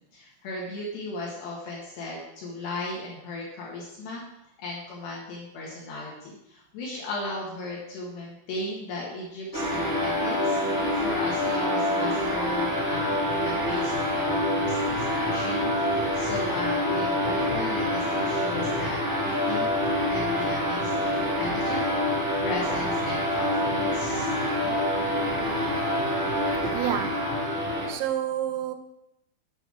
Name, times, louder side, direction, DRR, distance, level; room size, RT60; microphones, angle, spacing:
voice 1, 0.0-4.2 4.6-10.6 10.9-19.0 19.2-19.7 20.1-21.9 22.4-24.3 24.6-24.7, left 2 dB, 65° left, 3.5 m, -36 dB
sound 1, 9.5-27.9, left 1 dB, 70° right, 0.6 m, -26 dB
sound 2, 12.7-27.9, left 3 dB, 90° left, 3.9 m, -42 dB
voice 2, 25.0-25.8 26.6-27.4 27.9-28.8, right 11 dB, 90° right, 3.5 m, -31 dB
9.1 x 8.0 x 6.2 m
omnidirectional pair, 5.8 m